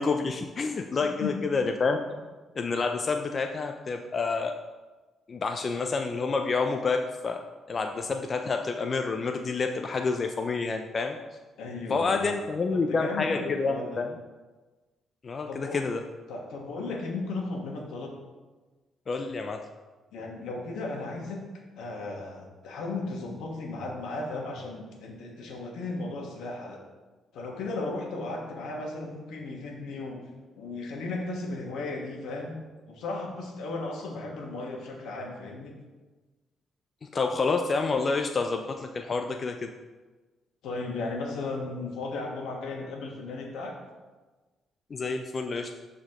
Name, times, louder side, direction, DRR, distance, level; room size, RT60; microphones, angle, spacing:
voice 1, 0.0-2.0 2.6-4.5 5.3-11.2 11.9-14.1 15.2-16.0 19.1-19.6 37.1-39.7 44.9-45.7, left 4 dB, 40° left, 5 dB, 0.4 m, -28 dB
voice 2, 11.6-14.0 15.5-15.9 16.3-18.1 20.1-21.4 21.8-26.8 27.3-30.2 30.6-32.6 32.9-35.7 40.6-43.7, left 3 dB, 80° left, 0 dB, 1.4 m, -35 dB
11.5 x 4.2 x 3.0 m, 1.3 s
cardioid pair, 90°, 0 cm